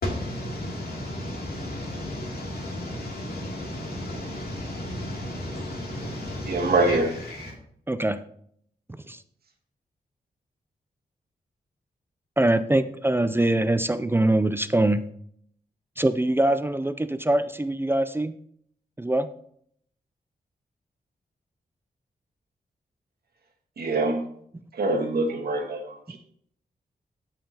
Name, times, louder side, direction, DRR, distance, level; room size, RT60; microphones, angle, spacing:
voice 1, 0.0-7.5, left 1 dB, 80° left, -1 dB, 2.7 m, -33 dB
voice 2, 6.5-7.1 23.8-24.3 24.7-26.2, right 2 dB, 80° right, 3 dB, 1.5 m, -24 dB
voice 3, 7.9-8.2 9.0-9.2 12.4-15.0 16.0-18.3 19.0-19.3, right 1 dB, 15° right, 11 dB, 0.4 m, -23 dB
14.0 x 5.7 x 2.9 m, 0.65 s
wide cardioid pair, 85°, 16 cm